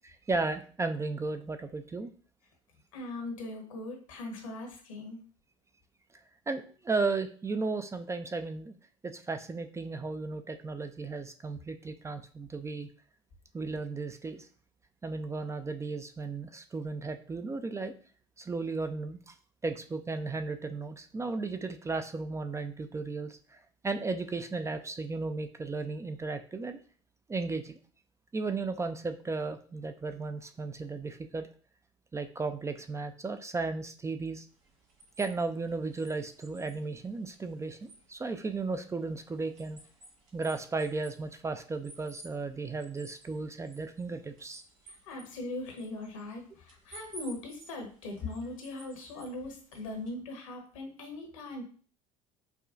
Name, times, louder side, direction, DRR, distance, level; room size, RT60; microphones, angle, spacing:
voice 1, 0.0-2.1 6.5-8.7 9.0-12.9 13.5-14.5 15.0-17.9 18.4-19.3 19.6-23.6 23.8-26.8 27.3-27.7 28.3-31.5 32.1-34.5 35.2-39.8 40.3-44.6, right 3 dB, 15° right, 8 dB, 0.4 m, -35 dB
voice 2, 2.9-5.2 44.9-51.6, left 2 dB, 80° left, 2 dB, 1.1 m, -40 dB
sound 1, 34.5-50.1, right 2 dB, 80° right, 1.1 m, -55 dB
4.8 x 2.3 x 2.5 m, 0.42 s
hypercardioid pair, 65°, 17 cm